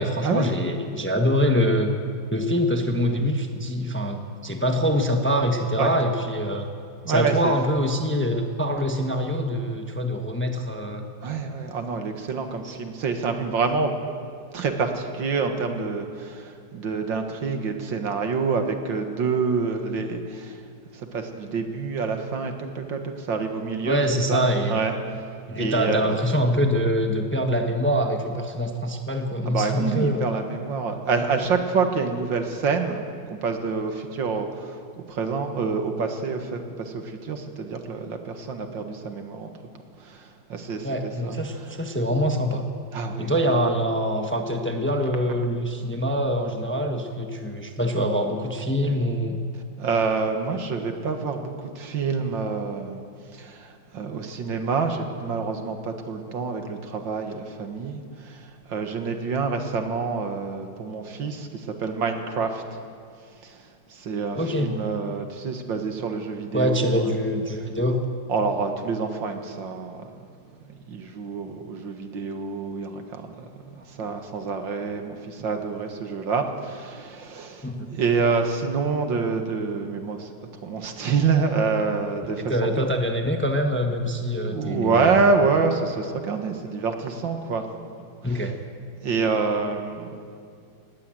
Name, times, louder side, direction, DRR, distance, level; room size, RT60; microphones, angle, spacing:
voice 1, 0.0-1.9 2.3-6.7 7.1-11.1 12.6-12.7 23.8-24.8 25.5-30.2 40.8-42.6 43.2-49.4 64.3-64.7 66.5-68.0 74.1-74.2 77.6-77.9 82.5-85.2 88.2-88.5, equal, 10° left, 4 dB, 1.1 m, -24 dB
voice 2, 7.1-7.5 11.2-13.9 14.5-20.6 20.9-24.0 24.3-24.4 24.7-24.9 25.5-26.2 29.5-33.0 33.3-39.5 40.0-41.4 42.9-43.3 49.8-53.0 53.3-62.8 63.4-67.2 68.3-70.2 70.7-80.3 80.6-82.9 84.5-87.7 88.3-88.5 89.0-90.2, right 4 dB, 80° right, 5 dB, 2.3 m, -27 dB
19.5 x 18.0 x 7.7 m, 2.3 s
omnidirectional pair, 2.0 m